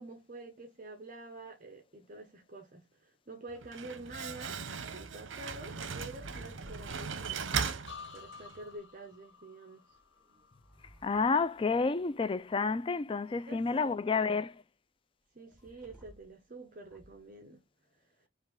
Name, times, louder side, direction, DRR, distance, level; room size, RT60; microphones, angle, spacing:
voice 1, 0.0-7.6 8.1-10.0 13.3-14.4 15.3-18.3, right 2 dB, 45° right, 0.8 m, -48 dB
Slam, 3.5-8.6, right 6 dB, 80° right, 0.8 m, -38 dB
sound 1, 5.4-8.9 9.9-12.2 15.5-16.4 16.8-17.3, equal, 5° right, 1.9 m, -56 dB
sound 2, 7.9-11.7 12.0-12.5, left 5 dB, 70° left, 1.5 m, -53 dB
voice 2, 11.0-14.5, left 4 dB, 25° left, 0.3 m, -30 dB
5.3 x 2.4 x 3.7 m
head